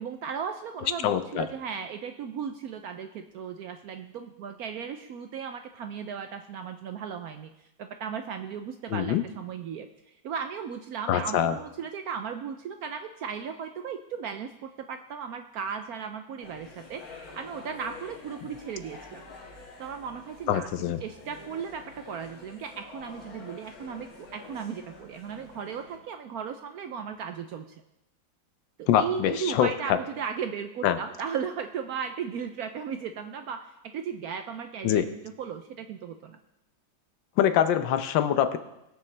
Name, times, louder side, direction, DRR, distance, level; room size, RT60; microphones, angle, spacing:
voice 1, 0.0-7.5 7.8-17.0 17.3-19.2 19.8-20.7 21.0-27.7 28.8-36.4, right 7 dB, 70° right, 7 dB, 0.9 m, -36 dB
voice 2, 1.0-1.5 8.9-9.2 11.1-11.6 20.5-21.0 28.9-30.0 30.8-31.0 34.8-35.1 37.4-38.6, left 10 dB, 80° left, 10 dB, 1.4 m, -24 dB
sound 1, 16.4-26.0, left 3 dB, 50° left, 3.1 m, -48 dB
20.5 x 7.0 x 3.3 m, 0.89 s
omnidirectional pair, 2.0 m